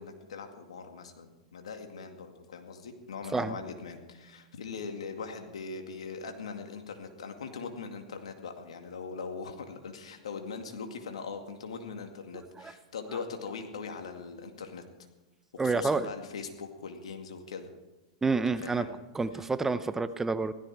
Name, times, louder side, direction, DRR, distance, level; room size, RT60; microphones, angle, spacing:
voice 1, 0.0-14.9 15.5-17.7 18.6-18.9, left 5 dB, 80° left, 5 dB, 2.2 m, -41 dB
voice 2, 15.6-16.1 18.2-18.9 19.1-20.5, right 4 dB, 10° right, 13 dB, 0.6 m, -28 dB
16.5 x 13.5 x 4.7 m, 1.1 s
hypercardioid pair, 115°, 3 cm